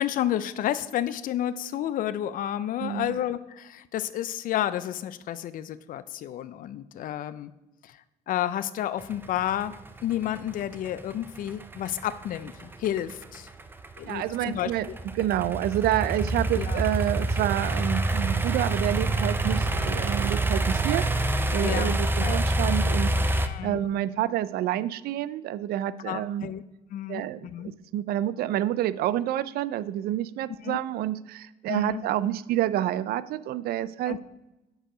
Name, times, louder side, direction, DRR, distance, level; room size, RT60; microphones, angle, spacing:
voice 1, 0.0-7.5 7.8-8.0 8.3-9.7 10.0-13.5 14.0-14.9 16.6-16.8 21.6-22.4 23.3-23.8 26.1-26.6 26.9-27.7 30.6-30.8 31.7-32.0 34.1-34.2, left 11 dB, 55° left, 15 dB, 0.4 m, -31 dB
voice 2, 2.8-3.2 14.1-14.9 15.1-23.3 23.6-26.5 27.1-34.2, right 12 dB, 65° right, 17 dB, 0.4 m, -28 dB
sound 1, 9.0-23.5, right 2 dB, 10° right, 0.5 m, -27 dB
7.8 x 4.6 x 5.0 m, 1.0 s
cardioid pair, 110°, 17 cm